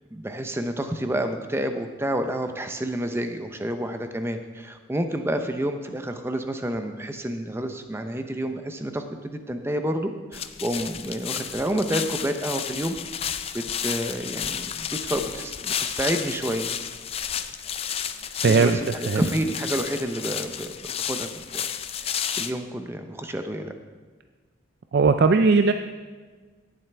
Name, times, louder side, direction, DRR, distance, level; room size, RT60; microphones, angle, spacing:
voice 1, 0.1-13.0 13.5-16.7 18.5-20.8 21.1-21.7 22.0-23.7, right 1 dB, 10° right, 7 dB, 0.6 m, -29 dB
sound 1, 10.3-22.5, left 8 dB, 30° left, 0.4 m, -32 dB
voice 2, 18.4-18.8 19.1-19.2 24.9-25.7, right 4 dB, 55° right, 8 dB, 0.4 m, -18 dB
17.5 x 7.5 x 3.4 m, 1.4 s
head